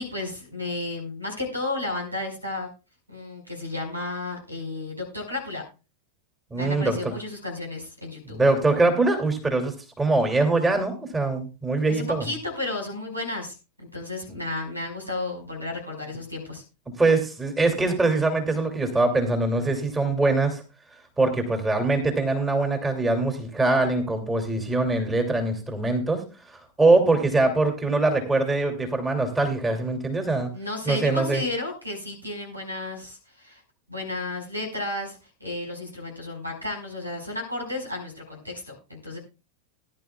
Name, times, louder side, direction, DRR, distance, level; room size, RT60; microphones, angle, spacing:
voice 1, 0.0-2.7 3.1-5.6 6.5-8.4 11.9-16.6 30.5-33.6 33.9-39.2, left 2 dB, 85° right, 3 dB, 5.1 m, -33 dB
voice 2, 6.5-7.1 8.3-12.3 17.0-20.6 21.2-30.5 30.9-31.4, right 2 dB, 15° right, 4 dB, 2.7 m, -23 dB
19.5 x 11.0 x 2.4 m, 0.30 s
figure-of-eight pair, 90°, 0 cm